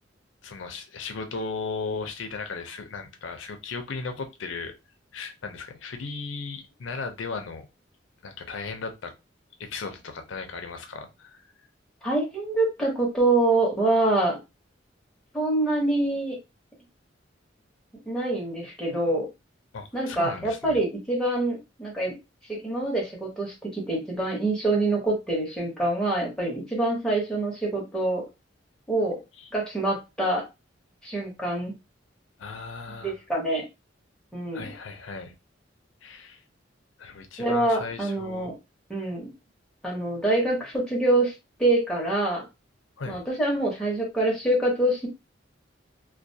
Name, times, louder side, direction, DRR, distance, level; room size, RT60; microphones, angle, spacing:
voice 1, 0.4-4.7 5.1-7.7 8.2-9.1 9.6-11.4 19.7-20.8 29.4-29.5 32.4-33.1 34.5-35.3 36.0-36.4 37.0-38.5 43.0-43.2, left 4 dB, 85° left, 0.5 m, -36 dB
voice 2, 12.0-14.4 15.3-16.4 18.1-19.3 19.9-22.1 22.5-28.2 28.9-29.2 29.5-30.4 31.0-31.7 33.0-33.6 34.3-34.7 37.4-38.5 38.9-39.3 39.8-41.3 41.6-42.5 43.1-45.1, right 2 dB, 5° left, 0.8 m, -25 dB
2.3 x 2.2 x 2.7 m
head